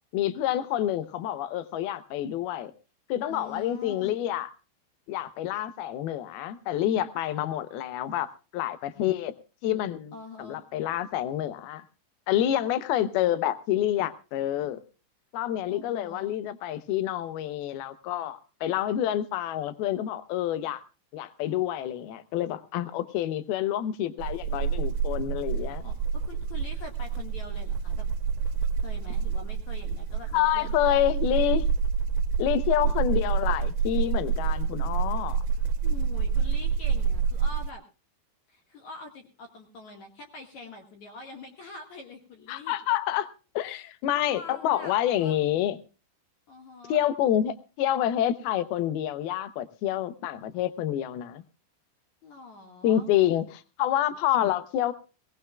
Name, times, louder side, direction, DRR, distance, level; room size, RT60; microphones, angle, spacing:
voice 1, 0.1-2.7 3.1-4.5 5.1-9.3 9.6-10.1 10.4-11.8 12.3-14.8 15.3-20.8 21.1-25.8 30.3-31.7 32.4-35.4 42.5-43.3 43.6-45.8 46.9-51.4 52.8-54.9, left 12 dB, 80° left, 13 dB, 2.2 m, -28 dB
voice 2, 3.3-4.2 10.1-10.6 15.7-16.3 25.6-28.1 28.8-31.0 35.8-37.8 38.5-42.8 43.6-43.9 44.2-45.4 46.5-47.0 52.2-53.1, left 3 dB, 55° left, 4 dB, 2.2 m, -45 dB
sound 1, 24.2-37.7, right 6 dB, 85° right, 3.4 m, -28 dB
21.0 x 18.5 x 2.3 m, 0.31 s
omnidirectional pair, 5.6 m